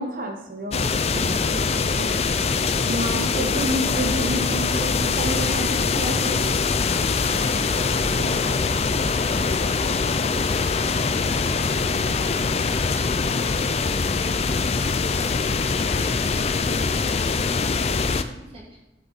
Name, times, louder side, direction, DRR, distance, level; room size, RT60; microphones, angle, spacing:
voice 1, 0.0-2.2 2.9-6.7 7.3-8.5, right 1 dB, 50° right, 3 dB, 1.1 m, -31 dB
sound 1, 0.7-18.2, left 4 dB, 35° left, 0.4 m, -23 dB
voice 2, 7.0-18.8, equal, 30° right, -4 dB, 2.6 m, -43 dB
11.0 x 7.3 x 4.1 m, 0.98 s
head